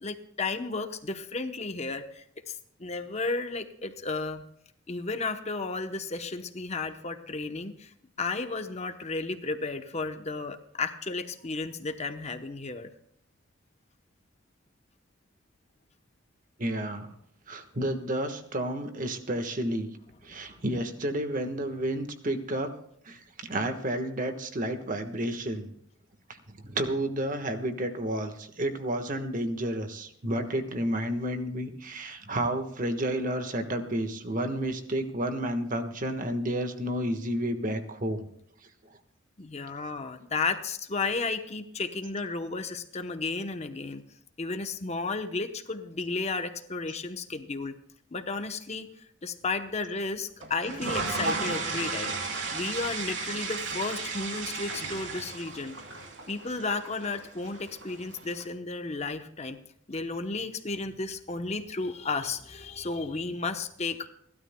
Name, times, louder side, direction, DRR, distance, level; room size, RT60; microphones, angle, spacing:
voice 1, 0.0-4.4 4.9-12.9 39.4-44.0 44.4-47.7 48.1-52.1 52.5-55.8 56.3-59.6 59.9-64.1, left 3 dB, 35° left, 8 dB, 0.8 m, -33 dB
voice 2, 16.6-17.1 17.5-19.9 20.2-22.7 23.1-25.7 26.3-38.2, right 1 dB, 40° right, 7 dB, 1.4 m, -31 dB
sound 1, 50.4-58.4, right 4 dB, 65° right, 3.1 m, -34 dB
29.5 x 12.5 x 2.2 m, 0.68 s
head